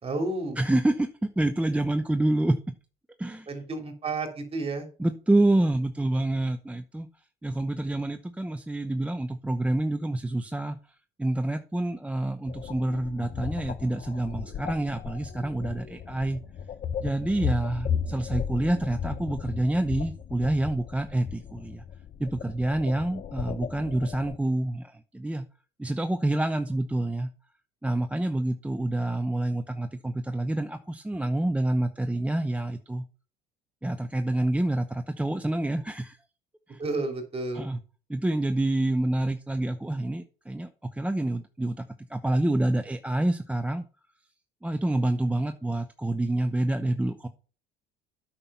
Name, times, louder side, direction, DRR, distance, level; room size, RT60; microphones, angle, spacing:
voice 1, 0.0-0.6 3.5-4.9 36.8-37.7, right 2 dB, 30° right, 5 dB, 3.1 m, -31 dB
voice 2, 0.6-1.1 1.4-2.6 3.2-3.5 5.0-7.1 7.4-10.8 11.2-16.4 17.0-21.8 22.2-25.5 25.8-27.3 27.8-33.0 33.8-36.2 36.7-36.8 37.5-37.8 38.1-41.8 42.1-43.8 44.6-47.3, right 1 dB, 5° right, 8 dB, 0.7 m, -27 dB
sound 1, 12.5-24.4, left 7 dB, 40° left, 1.0 m, -35 dB
8.8 x 6.0 x 5.6 m, 0.37 s
supercardioid pair, 95°, 20 cm